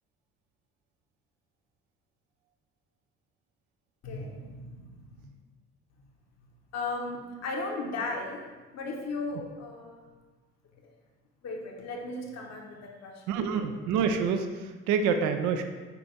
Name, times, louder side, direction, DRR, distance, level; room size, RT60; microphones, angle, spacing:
voice 1, 4.0-5.2 6.7-8.4 8.7-10.0 11.4-13.6, left 3 dB, 50° left, 1 dB, 1.1 m, -36 dB
voice 2, 13.3-14.5 14.9-15.6, right 6 dB, 60° right, 7 dB, 0.6 m, -26 dB
5.1 x 4.7 x 4.6 m, 1.3 s
figure-of-eight pair, 45°, 35 cm